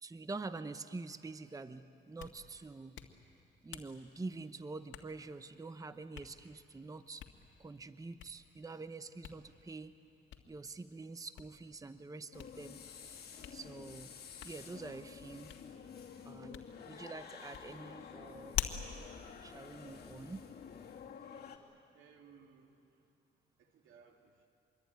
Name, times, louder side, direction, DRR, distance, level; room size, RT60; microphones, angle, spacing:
voice 1, 0.0-3.0 3.6-7.2 7.6-9.9 10.5-12.8 13.5-14.1 14.4-15.5 16.2-18.6 19.4-20.4, right 3 dB, 15° right, 11 dB, 0.8 m, -46 dB
Hands, 1.9-20.5, left 9 dB, 75° left, 1.8 m, -49 dB
sound 1, 12.3-21.6, left 7 dB, 55° left, 2.8 m, -50 dB
voice 2, 21.9-23.1 23.6-24.5, right 6 dB, 85° right, 3 dB, 2.8 m, -62 dB
26.0 x 22.5 x 9.3 m, 2.6 s
cardioid pair, 90°, 20 cm